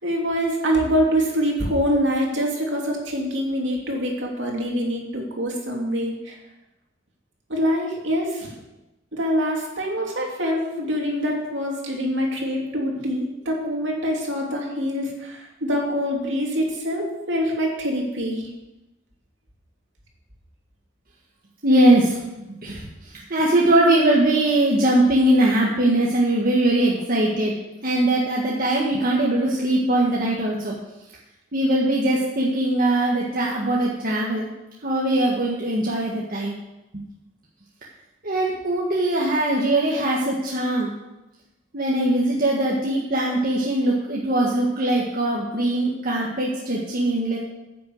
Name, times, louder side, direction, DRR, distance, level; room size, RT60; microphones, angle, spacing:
voice 1, 0.0-6.3 7.5-8.5 9.1-18.5, equal, 70° right, -1 dB, 2.9 m, -25 dB
voice 2, 21.6-22.2 22.6-22.9 23.1-27.5 27.8-30.8 31.5-34.5 34.8-36.5 36.9-37.0 38.2-40.9 41.7-47.4, right 1 dB, 50° right, -4 dB, 1.7 m, -21 dB
10.0 x 7.0 x 7.8 m, 0.98 s
head